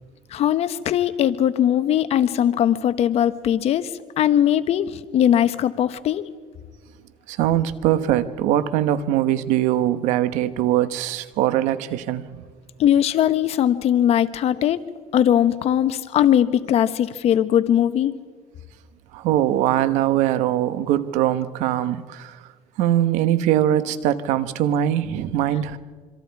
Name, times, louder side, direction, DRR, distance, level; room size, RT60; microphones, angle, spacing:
voice 1, 0.3-3.9 4.2-6.3 12.8-14.8 15.1-18.1, left 10 dB, 60° left, 1.1 m, -20 dB
voice 2, 7.3-12.4 19.1-22.4 22.8-25.8, right 12 dB, 90° right, 1.2 m, -22 dB
26.0 x 25.0 x 4.7 m
cardioid pair, 115°, 12 cm